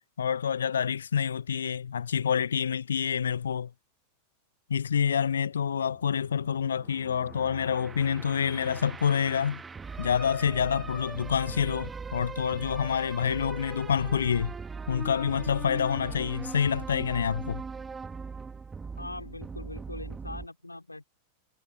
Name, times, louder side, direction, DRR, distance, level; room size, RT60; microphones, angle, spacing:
voice 1, 0.2-3.7 4.7-9.6 10.0-14.5 14.9-17.6, left 7 dB, 70° left, 0.5 m, -27 dB
sound 1, 5.6-20.5, right 5 dB, 15° right, 1.9 m, -40 dB
voice 2, 19.0-21.1, left 2 dB, 85° left, 3.4 m, -41 dB
figure-of-eight pair, 90°, 0 cm